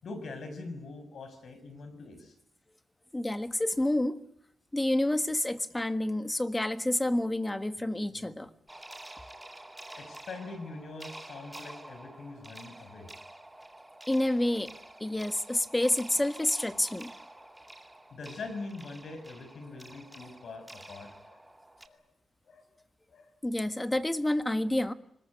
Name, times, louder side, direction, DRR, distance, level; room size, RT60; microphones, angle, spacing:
voice 1, 0.0-2.3 10.0-13.1 18.1-21.4 21.8-22.0 22.5-22.8 23.1-23.3 23.9-24.0, left 3 dB, 70° left, 9 dB, 5.9 m, -43 dB
voice 2, 3.1-4.2 4.7-8.5 14.1-14.7 15.0-17.1 23.4-24.9, left 1 dB, 15° left, 12 dB, 1.6 m, -29 dB
sound 1, 8.7-21.9, right 1 dB, 10° right, 2.2 m, -49 dB
24.0 x 21.0 x 9.9 m, 0.75 s
cardioid pair, 90°, 0 cm